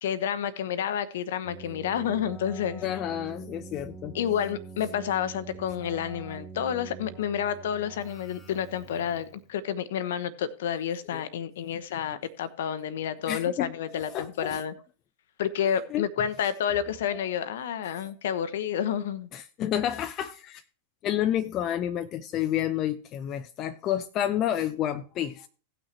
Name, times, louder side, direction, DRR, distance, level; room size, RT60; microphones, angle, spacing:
voice 1, 0.0-2.8 4.1-14.7 15.4-19.3, left 9 dB, 60° left, 0.9 m, -30 dB
Keyboard (musical), 1.4-9.5, right 4 dB, 15° left, 1.4 m, -45 dB
voice 2, 2.8-4.1 11.1-11.2 13.3-14.6 15.6-16.0 19.3-20.6 21.0-25.5, left 11 dB, 35° left, 0.6 m, -30 dB
17.5 x 6.1 x 3.0 m
figure-of-eight pair, 90°, 0 cm